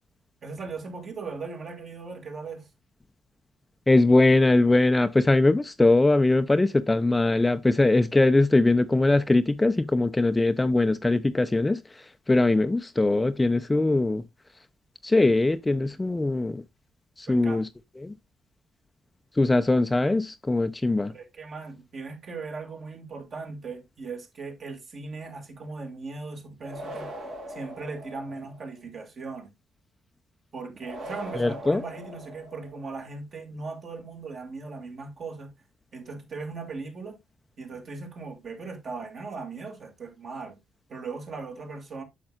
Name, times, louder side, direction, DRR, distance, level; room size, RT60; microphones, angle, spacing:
voice 1, 0.4-2.7 17.3-17.6 21.1-27.1 27.5-29.5 30.5-35.5 35.9-37.2 37.6-40.6 40.9-42.0, right 4 dB, 50° right, 2.3 m, -38 dB
voice 2, 3.9-11.8 12.3-14.2 15.0-16.6 17.2-17.7 18.0-18.1 19.4-21.1 31.4-31.8, left 2 dB, 15° left, 0.5 m, -21 dB
sound 1, 26.6-28.7 30.8-32.9, equal, 75° right, 4.2 m, -40 dB
8.9 x 6.7 x 2.4 m
cardioid pair, 90°, 0 cm